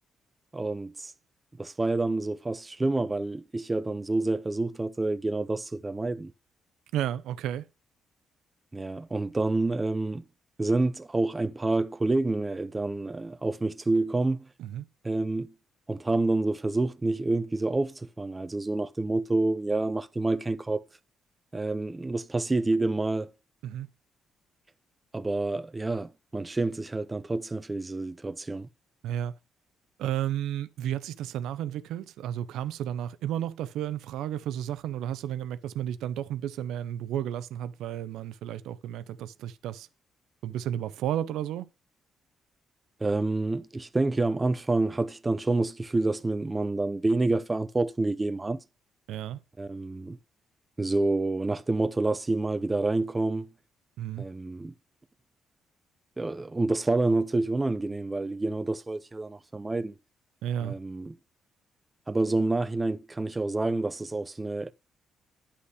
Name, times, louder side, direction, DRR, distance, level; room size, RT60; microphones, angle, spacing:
voice 1, 0.5-1.1 1.6-6.3 8.7-10.2 10.6-14.5 15.0-15.5 15.9-20.8 21.5-23.3 25.1-28.7 43.0-48.6 49.6-50.2 50.8-53.5 54.2-54.7 56.2-59.9 60.6-61.2 62.1-64.7, right 2 dB, 20° right, 0.6 m, -28 dB
voice 2, 6.9-7.7 14.6-14.8 23.6-23.9 29.0-29.3 30.0-39.9 40.4-41.7 49.1-49.4 54.0-54.3 60.4-60.8, right 11 dB, 85° right, 0.5 m, -32 dB
10.0 x 5.5 x 4.9 m
cardioid pair, 90°, 0 cm